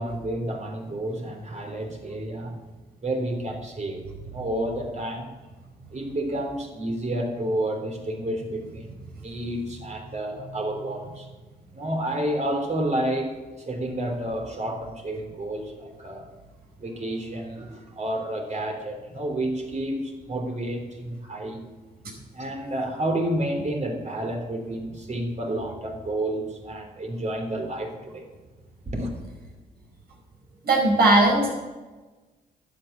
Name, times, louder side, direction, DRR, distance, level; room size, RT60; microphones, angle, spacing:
voice 1, 0.0-2.6 3.0-5.3 5.9-8.9 9.2-11.3 11.7-13.3 13.7-16.3 16.8-21.7 22.3-28.3 28.9-29.1, right 1 dB, 45° right, 3 dB, 3.5 m, -30 dB
voice 2, 30.6-31.5, right 2 dB, 70° right, 0 dB, 5.3 m, -18 dB
11.5 x 8.9 x 7.4 m, 1.2 s
supercardioid pair, 55°, 17 cm